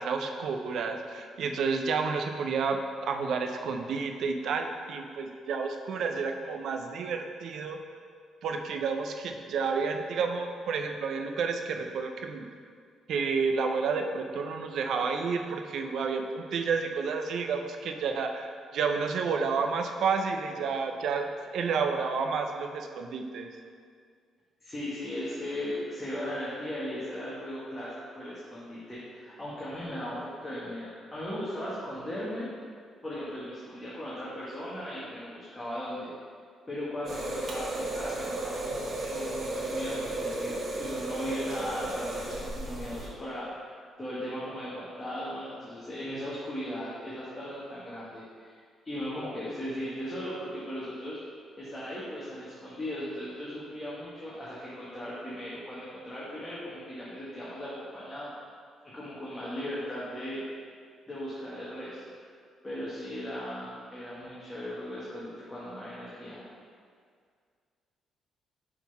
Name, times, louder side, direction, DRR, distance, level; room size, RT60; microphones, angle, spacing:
voice 1, 0.0-7.8 8.4-12.5 13.1-23.5, right 5 dB, 70° right, 5 dB, 0.6 m, -30 dB
voice 2, 24.6-32.5 33.0-36.1 36.7-48.6 48.8-51.2 51.6-58.3 58.9-60.4 61.1-62.1 62.6-66.4, equal, 20° left, -9 dB, 1.5 m, -37 dB
sound 1, 37.1-43.1, right 2 dB, 45° right, 1.3 m, -34 dB
6.2 x 3.9 x 5.5 m, 2.1 s
cardioid pair, 90°, 0 cm